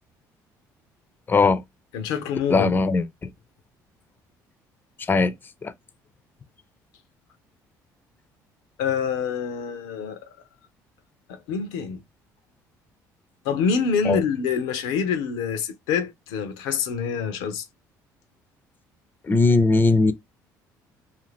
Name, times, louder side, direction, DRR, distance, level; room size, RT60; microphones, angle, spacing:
voice 1, 1.3-1.6 2.5-3.0 5.1-5.3 5.6-5.7 14.1-14.2 19.3-20.1, left 3 dB, 25° left, 0.5 m, -19 dB
voice 2, 1.9-2.7 8.8-10.3 11.3-12.0 13.4-17.6, left 6 dB, 90° left, 0.6 m, -26 dB
2.7 x 2.5 x 3.1 m
supercardioid pair, 85°, 8 cm